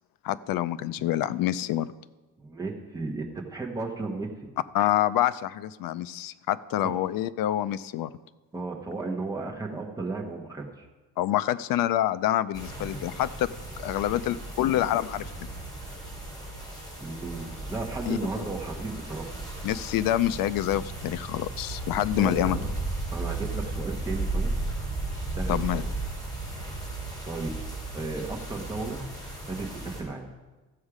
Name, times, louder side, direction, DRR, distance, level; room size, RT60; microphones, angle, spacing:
voice 1, 0.2-1.9 4.7-8.1 11.2-13.5 13.8-15.3 18.1-18.2 19.6-22.6 25.5-25.8, left 13 dB, 65° left, 15 dB, 0.5 m, -27 dB
voice 2, 2.4-4.3 6.8-6.9 8.5-10.9 17.0-19.3 22.2-22.7 23.1-24.5 25.3-25.9 27.2-27.5 27.9-29.1 29.5-30.3, right 3 dB, 10° right, -1 dB, 1.2 m, -34 dB
sound 1, 12.5-30.0, right 2 dB, 10° left, 3.0 m, -35 dB
15.0 x 6.4 x 4.9 m, 1.2 s
cardioid pair, 175°, 38 cm